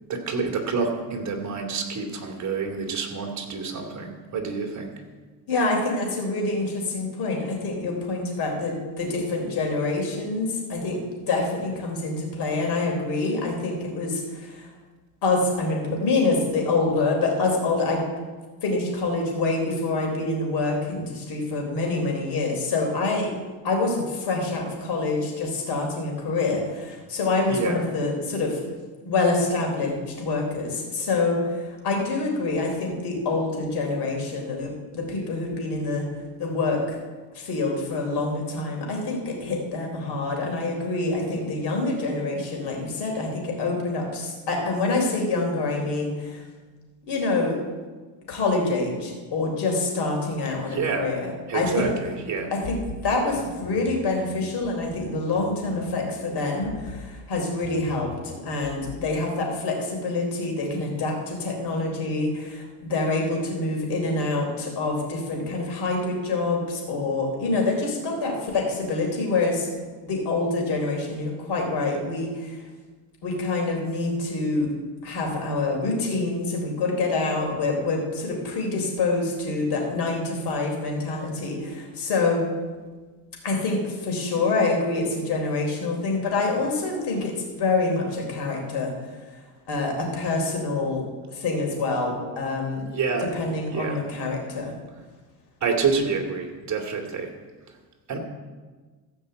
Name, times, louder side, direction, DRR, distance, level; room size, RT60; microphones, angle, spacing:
voice 1, 0.1-4.9 27.5-27.8 50.7-51.1 51.5-52.5 92.9-93.3 93.7-94.0 95.6-97.3 97.7-97.8 98.1-98.2, right 5 dB, 40° right, 2 dB, 2.4 m, -28 dB
voice 2, 5.5-14.7 15.2-18.0 18.6-23.3 23.6-28.6 29.1-36.1 36.4-37.0 37.3-46.4 47.0-47.6 48.3-51.3 51.5-51.9 52.5-69.7 70.0-72.6 73.2-74.7 75.0-82.5 83.4-88.9 89.7-91.0 91.3-92.8 93.2-94.7, left 3 dB, 65° left, 1 dB, 3.6 m, -26 dB
sound 1, 51.6-59.2, left 2 dB, 35° left, 1.5 m, -42 dB
15.0 x 5.3 x 7.8 m, 1.4 s
cardioid pair, 130°, 43 cm